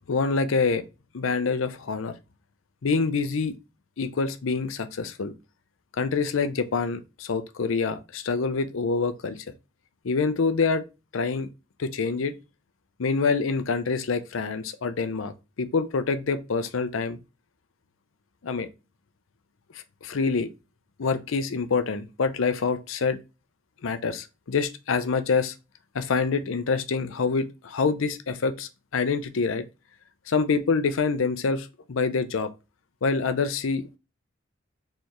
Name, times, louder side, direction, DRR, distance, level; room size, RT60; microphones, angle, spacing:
voice 1, 0.1-0.8 1.1-2.1 2.8-3.6 4.0-5.3 6.0-9.4 10.0-10.8 11.1-11.5 11.8-12.4 13.0-15.3 15.6-17.2 18.4-18.7 19.7-20.5 21.0-23.2 23.8-25.5 25.9-29.6 30.3-32.5 33.0-34.0, left 4 dB, 80° left, 0.5 m, -26 dB
4.5 x 3.4 x 3.0 m
head